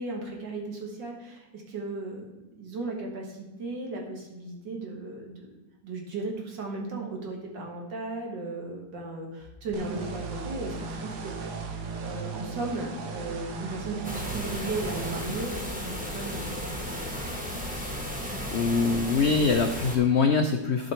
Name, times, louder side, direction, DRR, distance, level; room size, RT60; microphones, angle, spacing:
voice 1, 0.0-2.2 2.6-5.5 5.8-17.2, right 2 dB, 90° right, 0 dB, 2.5 m, -36 dB
sound 1, 9.7-15.2, right 4 dB, 70° right, 1.4 m, -36 dB
sound 2, 14.0-20.0, equal, 5° right, 1.4 m, -34 dB
voice 2, 18.5-20.9, left 4 dB, 90° left, 6 dB, 0.5 m, -23 dB
12.5 x 5.1 x 4.4 m, 1.0 s
omnidirectional pair, 1.9 m